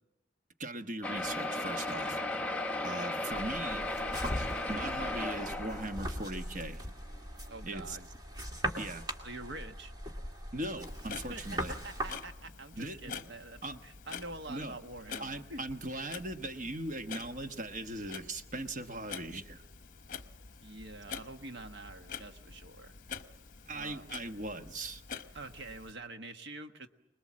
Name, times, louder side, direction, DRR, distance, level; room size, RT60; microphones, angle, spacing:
voice 1, 0.6-2.2 2.8-3.9 4.3-6.8 7.6-8.0 8.8-9.0 10.5-11.7 12.8-13.2 13.6-13.8 14.5-14.7 15.2-19.6 23.7-25.0, right 2 dB, 40° right, 7 dB, 1.2 m, -39 dB
sound 1, 1.0-6.5 7.1-7.2 7.5-7.6 7.9-8.0, left 2 dB, 5° left, 1.0 m, -35 dB
sound 2, 3.3-12.2, equal, 20° right, 2.1 m, -40 dB
voice 2, 7.5-8.1 9.2-9.9 11.3-15.6 20.6-22.9 23.7-24.1 25.3-26.9, right 2 dB, 65° right, 7 dB, 1.3 m, -46 dB
Clock, 10.8-25.9, left 6 dB, 45° left, 0.9 m, -47 dB
25.0 x 20.5 x 7.5 m, 0.86 s
head